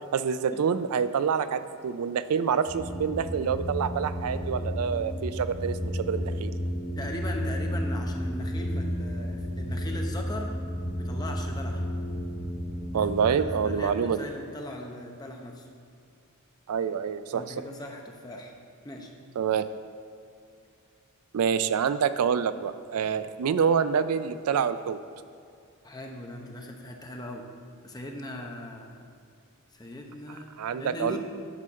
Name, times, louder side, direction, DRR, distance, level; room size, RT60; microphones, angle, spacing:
voice 1, 0.1-6.6 12.9-14.2 16.7-17.5 19.4-19.7 21.3-25.0 30.6-31.2, right 7 dB, 75° right, 13 dB, 0.4 m, -27 dB
sound 1, 2.7-13.7, equal, 85° left, 2.0 m, -32 dB
voice 2, 7.0-10.5 10.9-11.8 12.9-15.7 17.3-18.5 18.8-19.1 23.2-23.3 25.8-27.5 27.8-29.1 29.7-31.2, left 1 dB, 20° left, 2 dB, 0.9 m, -39 dB
9.9 x 4.4 x 6.3 m, 2.5 s
head